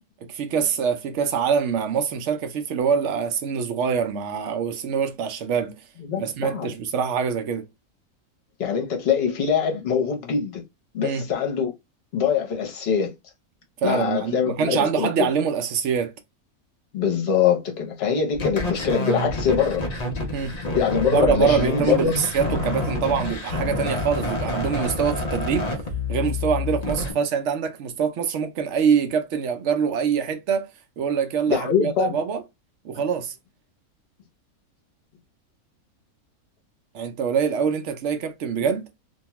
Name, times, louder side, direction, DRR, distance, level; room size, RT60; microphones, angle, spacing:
voice 1, 0.3-5.7 6.2-7.6 11.0-11.3 13.8-16.1 20.3-20.6 21.1-25.7 26.1-30.7 31.0-32.4 32.8-33.3 36.9-38.9, right 6 dB, 65° right, 0.8 m, -24 dB
voice 2, 6.0-6.7 8.6-10.6 10.9-11.7 12.1-13.1 13.8-15.3 16.9-19.8 20.7-22.2 31.5-32.1, left 7 dB, 50° left, 0.9 m, -23 dB
sound 1, 18.3-27.1, left 2 dB, 85° left, 0.3 m, -28 dB
2.7 x 2.2 x 2.9 m
omnidirectional pair, 1.5 m